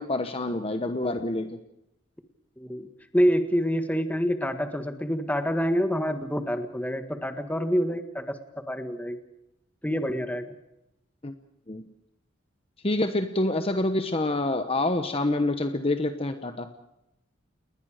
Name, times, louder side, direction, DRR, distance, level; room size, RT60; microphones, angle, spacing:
voice 1, 0.0-1.6 11.2-11.3 11.7-11.9 12.8-16.7, left 2 dB, 30° left, 8 dB, 1.1 m, -27 dB
voice 2, 2.6-2.9 3.1-9.2 9.8-10.5, equal, 10° left, 7 dB, 1.6 m, -27 dB
30.0 x 20.5 x 5.1 m, 0.87 s
head